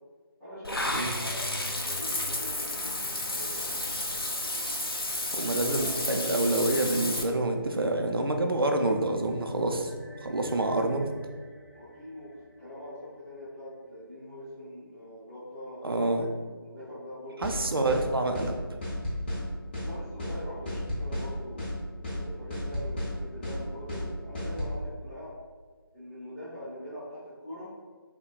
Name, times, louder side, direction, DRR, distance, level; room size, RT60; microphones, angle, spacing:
voice 1, 0.4-4.6 5.4-6.5 11.7-18.0 19.8-21.6 22.0-25.3 25.9-27.8, equal, 5° left, -19 dB, 0.4 m, -43 dB
Water / Bathtub (filling or washing), 0.6-7.2, left 1 dB, 85° left, 0.6 m, -32 dB
voice 2, 5.3-9.9 10.2-11.1 15.8-16.3 17.4-18.6, right 2 dB, 75° right, 4 dB, 0.5 m, -27 dB
sound 1, 7.0-13.7, left 1 dB, 45° left, 1.0 m, -50 dB
sound 2, 17.4-17.6 17.9-18.0 18.3-18.5 18.8-19.4 19.7-19.9 20.2-20.3 20.6-21.3 21.6-21.7 22.0-22.2 22.5-23.1 23.4-23.6 23.9-24.0 24.3-24.7, left 1 dB, 25° left, 0.8 m, -33 dB
5.7 x 2.2 x 2.3 m, 1.5 s
figure-of-eight pair, 155°, 12 cm